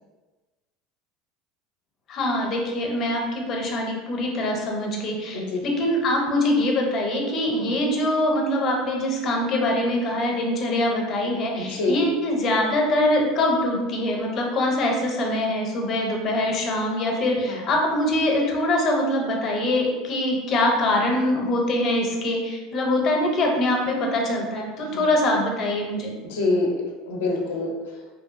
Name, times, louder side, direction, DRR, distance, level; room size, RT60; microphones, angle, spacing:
voice 1, 2.1-26.1, left 1 dB, 45° left, 0 dB, 0.6 m, -23 dB
voice 2, 11.6-12.0 17.5-17.7 24.9-25.1 26.3-26.7 27.1-27.7, left 3 dB, 85° left, 0 dB, 0.5 m, -26 dB
2.6 x 2.5 x 2.4 m, 1.3 s
supercardioid pair, 110°, 0 cm